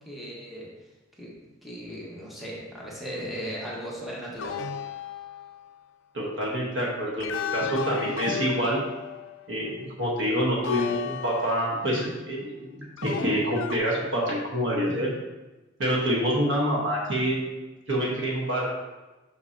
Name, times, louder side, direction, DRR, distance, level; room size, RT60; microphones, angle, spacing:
voice 1, 0.1-0.7 1.2-1.3 1.6-4.6, equal, ahead, -6 dB, 1.2 m, -37 dB
sound 1, 4.4-5.8 7.2-9.6 10.6-12.1 13.0-13.8, left 7 dB, 75° left, 0.4 m, -34 dB
voice 2, 6.1-8.8 9.5-15.1 15.8-17.4 17.9-18.7, equal, 70° right, -3 dB, 1.2 m, -27 dB
6.4 x 5.6 x 2.7 m, 1.1 s
head